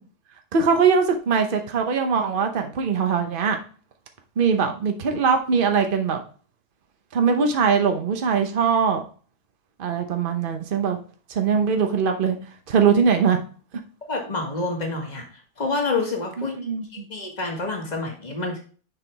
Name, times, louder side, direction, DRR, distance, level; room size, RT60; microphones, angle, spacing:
voice 1, 0.5-3.6 4.4-6.2 7.1-9.1 9.8-11.0 11.3-12.4 12.7-13.4 16.4-17.0, right 6 dB, 50° right, 5 dB, 1.1 m, -21 dB
voice 2, 14.1-15.3 15.6-16.6 16.9-18.6, left 3 dB, 35° left, 1 dB, 1.8 m, -27 dB
6.9 x 5.8 x 3.4 m, 0.39 s
omnidirectional pair, 1.2 m